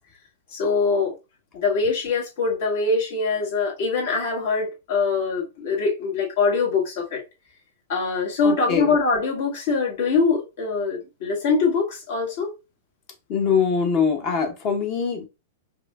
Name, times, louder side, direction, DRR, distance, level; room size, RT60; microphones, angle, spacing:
voice 1, 0.5-1.1 1.5-7.2 7.9-12.5, left 4 dB, 60° left, 1.6 m, -23 dB
voice 2, 8.4-9.0 13.3-15.3, left 6 dB, 40° left, 0.9 m, -23 dB
4.8 x 2.7 x 2.3 m
hypercardioid pair, 110°, 0 cm